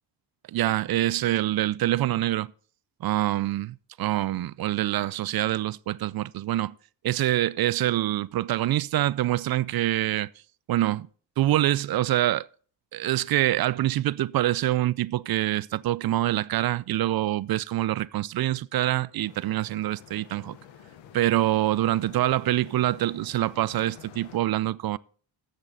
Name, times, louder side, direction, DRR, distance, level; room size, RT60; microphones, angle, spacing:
voice 1, 0.5-2.5 3.0-6.7 7.0-10.3 10.7-11.1 11.4-12.5 12.9-20.6 21.1-25.0, right 14 dB, 55° right, 0.5 m, -25 dB
sound 1, 19.2-24.4, left 9 dB, 90° left, 1.2 m, -49 dB
13.5 x 7.5 x 4.0 m
cardioid pair, 85°, 44 cm